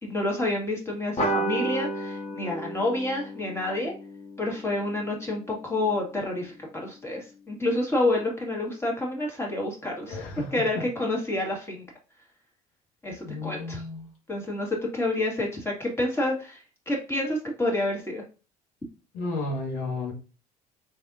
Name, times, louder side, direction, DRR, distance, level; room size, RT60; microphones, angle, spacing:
voice 1, 0.0-3.9 4.4-10.2 10.5-11.8 13.0-13.8 14.3-18.2, left 2 dB, 15° left, -1 dB, 1.9 m, -28 dB
sound 1, 1.2-6.1, right 1 dB, 30° left, 1.7 m, -33 dB
voice 2, 10.1-10.5 13.2-14.1 19.1-20.1, left 3 dB, 65° left, 0 dB, 1.7 m, -32 dB
4.0 x 3.3 x 2.6 m, 0.33 s
figure-of-eight pair, 60°, 20 cm